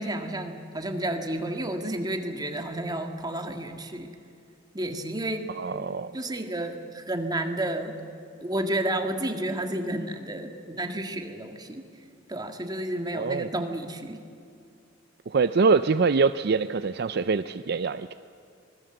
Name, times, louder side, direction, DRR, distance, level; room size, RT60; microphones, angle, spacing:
voice 1, 0.0-4.1 4.7-5.5 6.1-8.0 8.4-11.9 12.3-14.2, right 1 dB, 20° right, 5 dB, 1.9 m, -31 dB
voice 2, 5.6-6.1 13.1-13.5 15.3-18.1, right 4 dB, 55° right, 12 dB, 0.5 m, -24 dB
25.0 x 20.5 x 8.0 m, 2.4 s
head